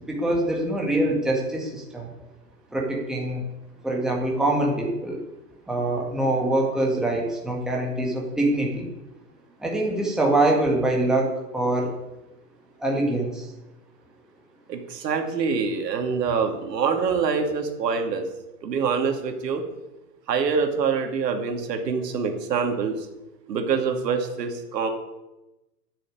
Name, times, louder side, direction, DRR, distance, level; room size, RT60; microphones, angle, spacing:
voice 1, 0.1-2.1 2.7-3.4 3.8-5.2 5.7-8.9 9.6-11.9 12.8-13.5, right 1 dB, ahead, -2 dB, 1.9 m, -24 dB
voice 2, 14.7-18.3 18.6-19.6 20.3-23.0 23.5-24.9, right 5 dB, 75° right, 5 dB, 2.4 m, -25 dB
10.5 x 7.1 x 8.6 m, 0.98 s
hypercardioid pair, 150°, 49 cm